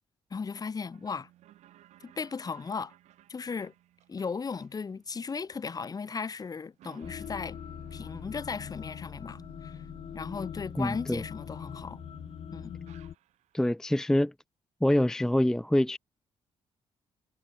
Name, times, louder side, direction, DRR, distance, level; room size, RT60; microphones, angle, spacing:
voice 1, 0.3-1.3 2.0-2.9 3.3-3.7 4.1-7.6 7.9-9.8 10.1-12.0 12.5-12.8, left 5 dB, 35° left, 2.1 m, -36 dB
sound 1, 0.9-13.7, right 14 dB, 90° right, 5.6 m, -57 dB
sound 2, 7.0-13.2, left 9 dB, 55° left, 1.3 m, -42 dB
voice 2, 10.8-11.2 13.5-14.3 14.8-16.0, left 1 dB, 5° left, 0.5 m, -25 dB
cardioid pair, 105°, 11 cm